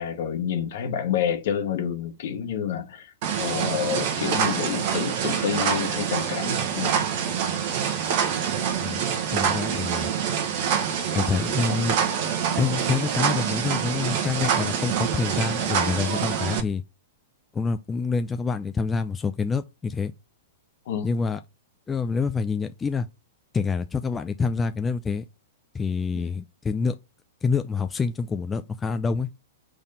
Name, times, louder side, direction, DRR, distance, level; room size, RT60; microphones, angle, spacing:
voice 1, 0.0-6.9 20.9-21.1 26.1-26.3, left 8 dB, 55° left, 1.3 m, -29 dB
sound 1, 3.2-16.6, right 8 dB, 45° right, 1.1 m, -26 dB
voice 2, 9.3-10.1 11.1-12.0 12.6-16.8 17.5-20.1 21.0-21.4 21.9-23.1 23.5-25.3 25.7-27.0 27.4-29.3, left 5 dB, 15° left, 0.4 m, -27 dB
5.5 x 3.5 x 5.5 m
figure-of-eight pair, 105°, 0 cm